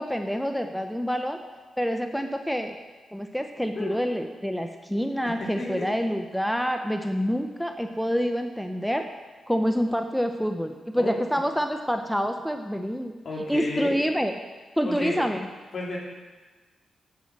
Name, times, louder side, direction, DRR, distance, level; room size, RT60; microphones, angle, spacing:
voice 1, 0.0-1.4 1.8-2.7 3.1-9.0 9.5-13.1 13.5-14.3 14.8-15.5, equal, ahead, 6 dB, 0.8 m, -27 dB
voice 2, 5.4-5.9 10.9-11.1 13.2-13.9 14.8-15.3 15.7-16.0, left 2 dB, 55° left, -3 dB, 3.3 m, -32 dB
8.6 x 7.6 x 7.3 m, 1.4 s
supercardioid pair, 50°, 0 cm